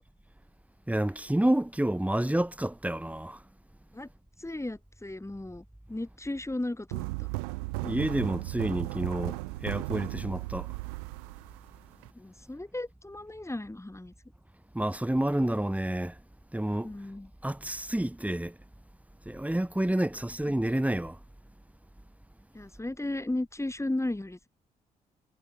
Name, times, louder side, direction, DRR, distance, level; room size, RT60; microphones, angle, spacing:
voice 1, 0.9-3.4 7.8-10.8 14.7-16.2 16.5-16.9 17.4-18.6 19.2-21.2, right 1 dB, 5° right, 2.8 m, -29 dB
voice 2, 4.4-7.3 12.1-14.1 16.8-17.3 19.9-20.1 22.5-24.5, left 1 dB, 15° left, 7.9 m, -35 dB
sound 1, 6.9-12.1, right 27 dB, 80° right, 0.7 m, -35 dB
hypercardioid pair, 40°, 20 cm